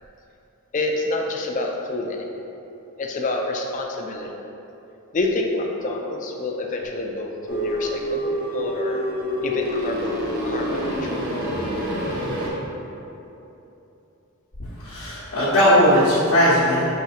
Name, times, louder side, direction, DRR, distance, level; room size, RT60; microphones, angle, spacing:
voice 1, 0.7-2.3 3.0-4.3 5.1-11.2, left 2 dB, 35° left, 2 dB, 0.4 m, -28 dB
sound 1, 7.5-12.5, equal, 45° right, 0.8 m, -27 dB
voice 2, 14.6-16.9, equal, 85° left, -10 dB, 0.9 m, -18 dB
6.0 x 3.2 x 2.8 m, 2.9 s
head